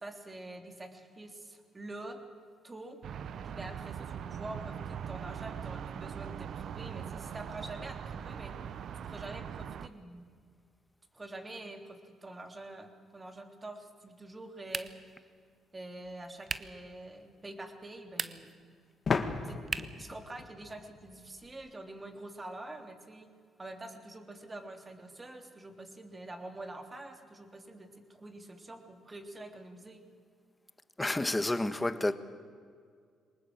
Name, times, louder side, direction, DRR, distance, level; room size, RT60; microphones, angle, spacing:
voice 1, 0.0-2.2 2.6-3.0 3.4-8.5 9.0-10.3 11.1-15.2 15.7-18.5 19.4-19.6 20.0-23.3 23.6-30.0, right 2 dB, 25° right, 3.4 m, -46 dB
sound 1, 3.0-9.9, right 8 dB, 65° right, 0.8 m, -41 dB
sound 2, 14.7-15.2 16.4-16.8 18.0-18.6 19.7-20.1, right 5 dB, 40° right, 1.1 m, -37 dB
sound 3, 16.1-16.2 19.1-21.7, left 5 dB, 45° left, 1.9 m, -35 dB
voice 2, 31.0-32.1, left 2 dB, 15° left, 1.5 m, -29 dB
23.5 x 20.0 x 7.9 m
supercardioid pair, 60°, 0 cm